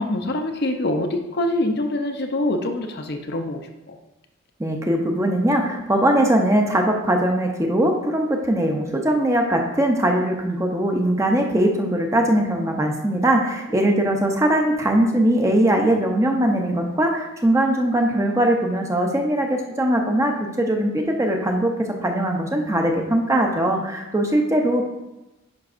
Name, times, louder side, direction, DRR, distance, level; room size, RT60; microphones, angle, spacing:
voice 1, 0.0-3.6 3.9-4.0, left 1 dB, 45° left, 5 dB, 0.6 m, -24 dB
voice 2, 4.6-21.7 22.0-24.8, right 1 dB, 15° right, 2 dB, 0.5 m, -20 dB
10.5 x 5.2 x 2.5 m, 0.98 s
head